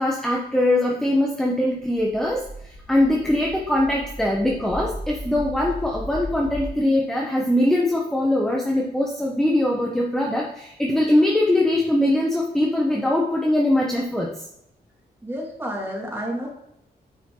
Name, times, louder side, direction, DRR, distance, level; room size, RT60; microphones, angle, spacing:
voice 1, 0.0-14.3, left 1 dB, 5° left, -1 dB, 1.2 m, -22 dB
sound 1, 1.8-6.7, equal, 25° left, 1.7 m, -36 dB
voice 2, 15.2-16.5, equal, 15° right, -2 dB, 2.6 m, -30 dB
9.6 x 5.9 x 3.9 m, 0.79 s
wide cardioid pair, 105°, 17 cm